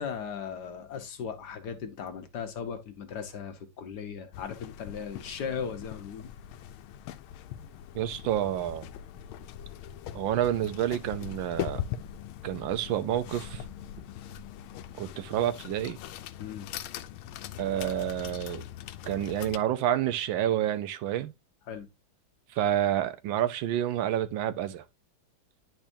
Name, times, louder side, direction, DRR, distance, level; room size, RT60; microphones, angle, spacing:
voice 1, 0.0-6.3 16.4-16.7 21.7-21.9, left 7 dB, 60° left, 1.3 m, -37 dB
sound 1, 4.3-19.6, left 11 dB, 85° left, 1.4 m, -41 dB
voice 2, 7.9-8.9 10.1-11.8 12.4-13.6 15.0-16.0 17.6-18.6 19.1-21.3 22.5-24.8, right 11 dB, 75° right, 1.3 m, -29 dB
10.5 x 4.3 x 2.7 m
omnidirectional pair, 2.2 m